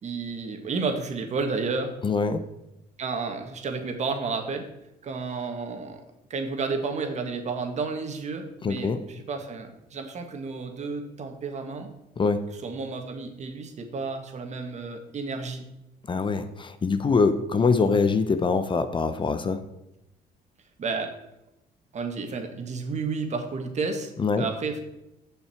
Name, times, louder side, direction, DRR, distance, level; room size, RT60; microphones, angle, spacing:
voice 1, 0.0-1.9 3.0-4.7 5.0-6.0 6.3-11.9 12.6-15.7 20.8-21.1 21.9-24.8, right 4 dB, 45° right, 5 dB, 1.9 m, -31 dB
voice 2, 2.0-2.4 8.6-9.0 12.2-12.4 16.1-19.6 24.2-24.5, left 4 dB, 30° left, 10 dB, 0.7 m, -24 dB
15.0 x 5.7 x 4.5 m, 0.89 s
cardioid pair, 110°, 17 cm